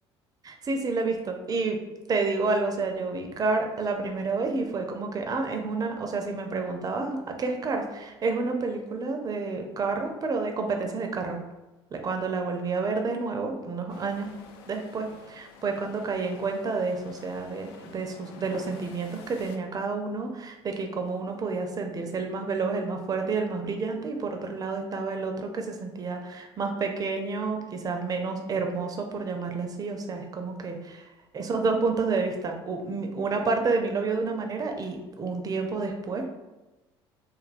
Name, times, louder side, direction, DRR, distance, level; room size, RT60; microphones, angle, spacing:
voice 1, 0.4-1.8 2.1-11.4 11.9-14.3 14.7-31.0 31.3-36.3, right 4 dB, 30° right, 4 dB, 0.5 m, -29 dB
sound 1, 13.9-19.6, left 5 dB, 65° left, 0.4 m, -48 dB
3.3 x 2.1 x 2.5 m, 1.1 s
figure-of-eight pair, 60°, 14 cm